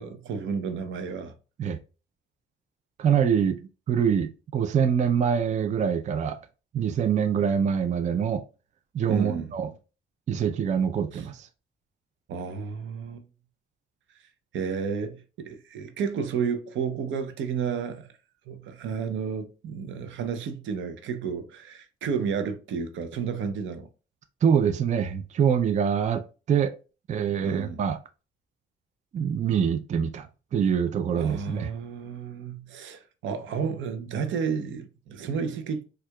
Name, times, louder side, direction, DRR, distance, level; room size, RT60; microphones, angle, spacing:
voice 1, 0.0-1.3 9.1-9.5 11.1-11.2 12.3-13.2 14.5-18.1 18.5-23.9 27.4-27.8 31.1-35.8, right 6 dB, 75° right, 0.6 m, -31 dB
voice 2, 3.0-3.6 3.9-6.4 6.7-8.5 8.9-9.7 10.3-11.5 24.4-26.7 27.1-28.0 29.1-31.7, right 7 dB, 35° right, 0.4 m, -25 dB
4.4 x 2.4 x 2.2 m
cardioid pair, 90°, 20 cm